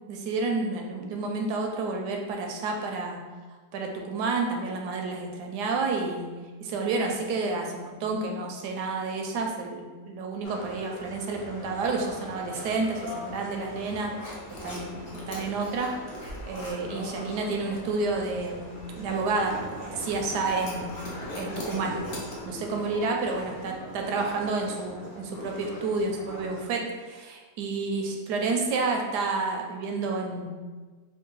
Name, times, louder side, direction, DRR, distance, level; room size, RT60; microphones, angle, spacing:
voice 1, 0.1-3.2 3.7-6.3 6.6-15.9 16.5-20.9 21.3-22.0 22.5-30.5, right 3 dB, 80° right, 2 dB, 1.2 m, -30 dB
sound 1, 10.4-26.7, left 1 dB, 90° left, 1.6 m, -41 dB
sound 2, 14.2-22.4, left 1 dB, 50° left, 0.7 m, -43 dB
3.7 x 2.1 x 3.9 m, 1.4 s
omnidirectional pair, 1.8 m